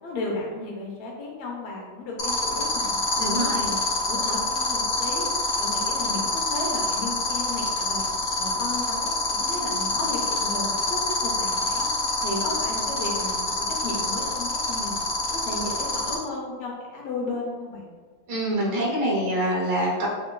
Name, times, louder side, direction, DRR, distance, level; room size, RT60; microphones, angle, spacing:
voice 1, 0.0-3.0 3.4-3.8 4.1-5.2 5.6-8.0 8.4-10.7 11.1-11.9 12.2-15.0 15.3-17.9, left 2 dB, 80° left, -2 dB, 1.7 m, -34 dB
sound 1, 2.2-16.1, left 3 dB, 60° left, 0.9 m, -26 dB
voice 2, 3.2-3.6 18.3-20.1, right 1 dB, 70° right, -4 dB, 1.7 m, -25 dB
5.9 x 2.2 x 2.2 m, 1.4 s
omnidirectional pair, 2.3 m